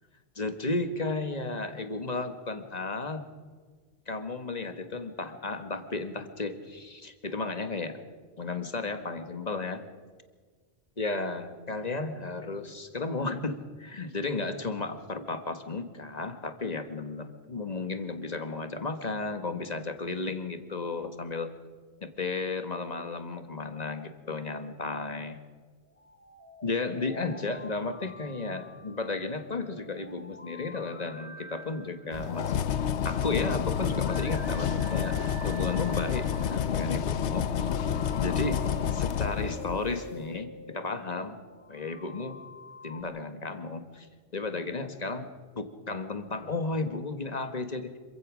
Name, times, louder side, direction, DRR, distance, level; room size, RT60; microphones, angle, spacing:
voice 1, 0.4-3.2 4.1-8.0 8.4-9.8 11.0-21.5 22.0-25.4 26.6-37.7 38.2-38.6 38.9-41.4 41.7-42.4 42.8-44.1 44.3-45.3 45.6-48.0, left 3 dB, 35° left, 8 dB, 1.6 m, -34 dB
sound 1, 25.9-43.0, left 1 dB, 10° left, 2.1 m, -48 dB
sound 2, 32.1-40.1, left 8 dB, 70° left, 1.0 m, -29 dB
26.5 x 16.0 x 6.3 m, 1.5 s
omnidirectional pair, 1.2 m